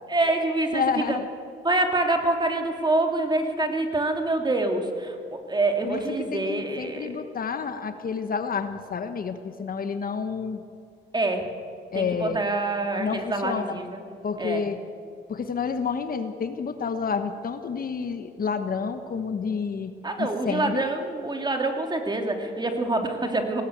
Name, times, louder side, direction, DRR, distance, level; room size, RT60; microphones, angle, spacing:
voice 1, 0.1-0.8 1.1-1.2 1.6-7.1 11.1-11.5 11.9-14.0 14.4-14.6 20.0-23.6, right 2 dB, 20° right, 4 dB, 2.6 m, -26 dB
voice 2, 0.7-1.3 5.8-10.6 11.9-12.4 13.0-13.8 14.2-14.8 15.3-19.9 20.2-20.9, left 6 dB, 45° left, 9 dB, 1.3 m, -29 dB
18.5 x 18.0 x 8.1 m, 2.4 s
cardioid pair, 90°, 20 cm